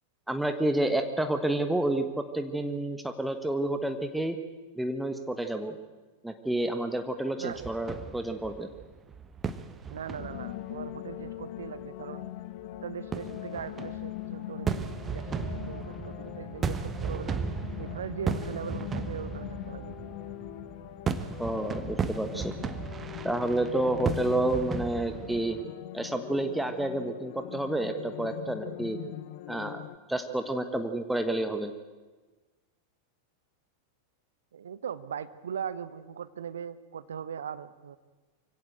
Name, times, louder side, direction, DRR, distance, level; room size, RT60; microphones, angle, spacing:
voice 1, 0.3-4.4 4.7-5.7 6.2-8.7 21.4-22.5 23.2-25.6 25.9-29.0 29.5-29.8 30.1-31.7, right 1 dB, 5° right, 7 dB, 1.3 m, -29 dB
sound 1, 7.5-11.9 12.2-12.9 13.1-25.6, right 5 dB, 20° right, 1.2 m, -36 dB
voice 2, 9.9-12.3 12.8-17.4 17.8-20.1 34.5-38.0, right 8 dB, 65° right, 15 dB, 1.0 m, -40 dB
sound 2, 10.2-30.0, left 15 dB, 50° left, 0.7 m, -41 dB
24.0 x 16.5 x 8.1 m, 1.3 s
figure-of-eight pair, 90°, 0 cm